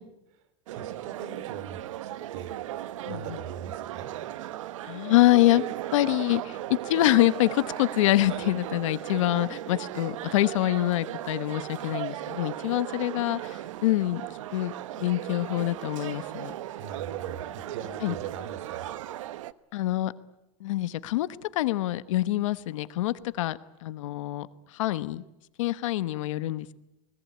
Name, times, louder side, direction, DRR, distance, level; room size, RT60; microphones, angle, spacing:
voice 1, 0.7-2.6 3.1-4.1 16.8-19.0, right 8 dB, 65° right, 12 dB, 3.4 m, -40 dB
sound 1, 0.7-19.5, right 13 dB, 90° right, 0.9 m, -37 dB
voice 2, 3.0-3.4 4.9-5.6 5.9-14.2 14.5-14.7 15.0-16.6 18.0-18.2 19.7-20.1 20.6-21.3 21.5-24.5 24.7-25.2 25.6-26.8, left 16 dB, 80° left, 14 dB, 1.1 m, -25 dB
29.0 x 20.0 x 8.6 m, 0.96 s
supercardioid pair, 145°, 16 cm